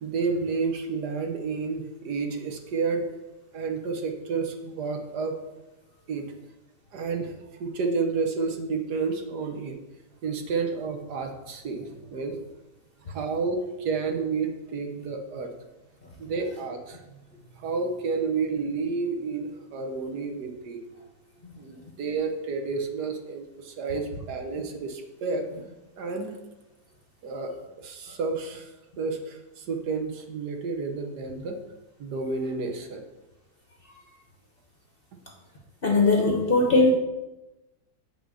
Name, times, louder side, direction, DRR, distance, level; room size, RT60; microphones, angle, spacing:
voice 1, 0.0-3.1 3.5-5.3 6.1-6.3 6.9-9.8 10.2-12.5 13.0-15.5 16.2-20.8 21.6-25.4 26.0-26.3 27.2-27.5 27.8-31.6 32.0-33.0, right 4 dB, 70° right, 4 dB, 1.5 m, -30 dB
voice 2, 35.8-36.9, left 3 dB, 40° left, 1 dB, 0.9 m, -20 dB
8.5 x 4.1 x 6.2 m, 1.0 s
omnidirectional pair, 1.9 m